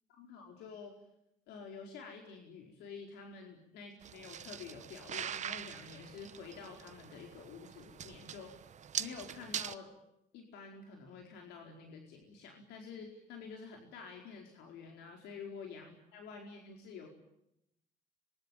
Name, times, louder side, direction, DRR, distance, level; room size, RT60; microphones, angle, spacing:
voice 1, 0.1-0.9 1.5-8.5 9.0-9.9 10.3-17.1, left 5 dB, 85° left, 2 dB, 4.5 m, -49 dB
sound 1, 4.0-9.7, right 9 dB, 45° right, 1.1 m, -43 dB
25.5 x 23.0 x 9.1 m, 0.81 s
cardioid pair, 110°, 17 cm